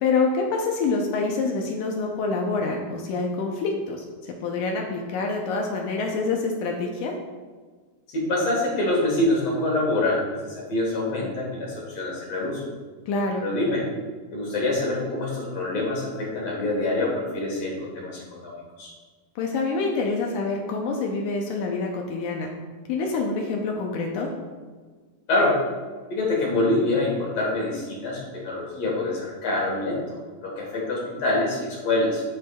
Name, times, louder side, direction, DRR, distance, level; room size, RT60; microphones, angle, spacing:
voice 1, 0.0-4.0 4.4-7.1 13.1-13.4 19.4-22.5 22.9-24.3, left 3 dB, 80° left, 1 dB, 2.1 m, -26 dB
voice 2, 8.1-12.6 13.4-13.8 14.3-18.9 25.3-25.6 26.1-32.2, left 2 dB, 60° left, -3 dB, 2.3 m, -25 dB
11.0 x 5.2 x 2.3 m, 1.4 s
omnidirectional pair, 3.7 m